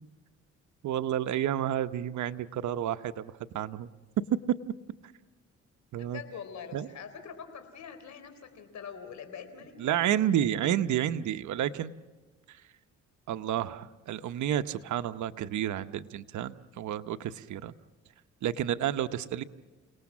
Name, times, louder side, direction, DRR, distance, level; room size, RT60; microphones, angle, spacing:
voice 1, 0.8-3.9 4.5-4.6 5.9-6.2 6.7-6.9 9.8-11.9 12.5-12.6 13.3-17.7 18.4-19.4, right 11 dB, 70° right, 10 dB, 1.0 m, -30 dB
voice 2, 6.0-10.0, left 7 dB, 65° left, 9 dB, 3.9 m, -44 dB
29.5 x 19.0 x 7.4 m, 1.3 s
cardioid pair, 90°, 30 cm